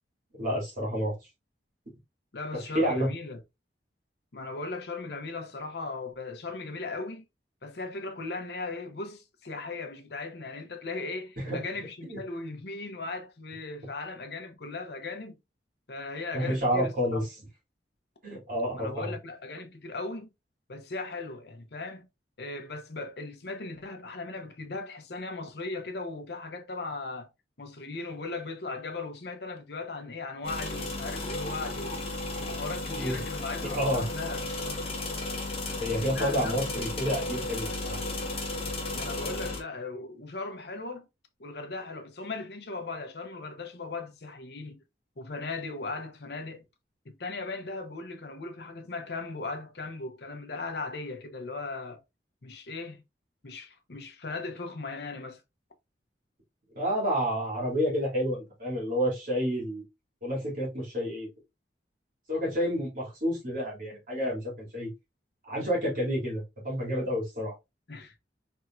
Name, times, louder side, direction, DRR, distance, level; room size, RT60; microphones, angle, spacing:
voice 1, 0.3-1.1 2.7-3.1 11.4-11.6 12.0-12.2 16.3-17.3 18.2-19.1 32.9-33.2 33.7-34.0 35.8-38.0 56.7-59.8 60.2-61.3 62.3-64.9 65.4-67.5, equal, 50° right, 2.7 m, -29 dB
voice 2, 2.3-3.4 4.3-7.2 7.6-15.4 15.9-17.2 18.7-20.3 20.7-22.1 22.4-27.3 27.6-32.0 32.4-34.9 36.1-36.5 38.9-41.1 41.4-44.8 45.2-46.7 47.0-52.0 52.4-53.0 53.4-55.4 67.9-68.2, left 3 dB, 65° left, 0.8 m, -38 dB
sound 1, 30.4-39.6, left 2 dB, 35° left, 1.1 m, -34 dB
4.3 x 3.6 x 2.5 m
head